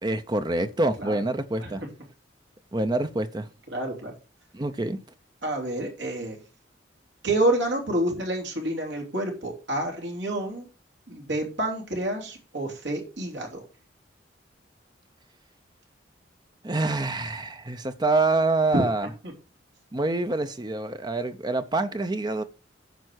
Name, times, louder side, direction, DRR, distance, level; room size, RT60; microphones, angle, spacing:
voice 1, 0.0-1.8 2.7-3.5 4.5-5.0 16.6-19.1 19.9-22.4, right 2 dB, 25° right, 0.6 m, -26 dB
voice 2, 3.7-4.1 5.4-6.4 7.2-10.6 11.1-13.6 18.7-18.8, right 1 dB, 80° right, 3.2 m, -28 dB
9.3 x 5.5 x 6.1 m
head